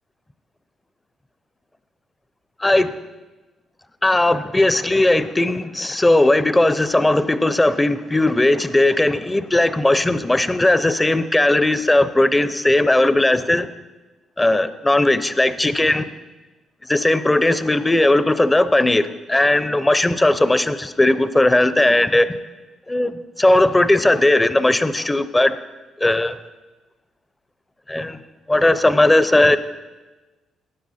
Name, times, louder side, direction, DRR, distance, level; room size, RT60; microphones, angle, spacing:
voice 1, 2.6-2.9 4.0-13.7 14.4-16.1 16.9-22.4 22.9-23.1 23.4-25.5 26.0-26.4 27.9-28.2 28.5-29.6, left 1 dB, 15° left, 14 dB, 0.6 m, -17 dB
14.0 x 9.3 x 4.2 m, 1.2 s
cardioid pair, 90°, 0 cm